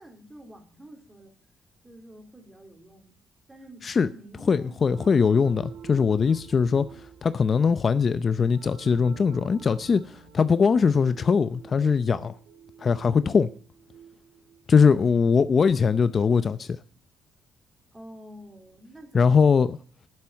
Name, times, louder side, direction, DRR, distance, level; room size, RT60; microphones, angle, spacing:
voice 1, 0.0-1.3 1.8-3.2 3.5-4.9 17.9-19.7, right 1 dB, 20° right, 3.7 m, -48 dB
voice 2, 4.5-6.9 7.2-10.0 10.3-12.3 12.8-13.5 14.7-16.8 19.1-19.8, left 5 dB, 45° left, 0.6 m, -21 dB
sound 1, 4.8-15.3, right 7 dB, 75° right, 2.5 m, -48 dB
10.5 x 7.6 x 8.7 m
cardioid pair, 90°, 0 cm